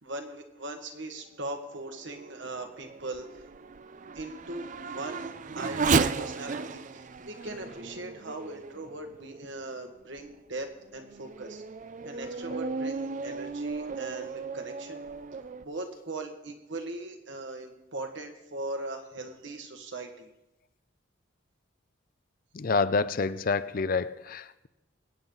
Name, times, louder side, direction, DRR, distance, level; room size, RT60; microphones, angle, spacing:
voice 1, 0.0-3.4 4.1-11.6 12.0-15.0 15.6-20.3, right 2 dB, 65° right, 5 dB, 1.7 m, -39 dB
Race car auto racing / Accelerating revving vroom, 1.6-9.6 10.2-10.3 10.9-15.7, right 4 dB, 40° right, 0.4 m, -34 dB
voice 2, 22.5-24.7, left 4 dB, 45° left, 15 dB, 0.5 m, -28 dB
23.0 x 9.1 x 3.9 m, 0.94 s
head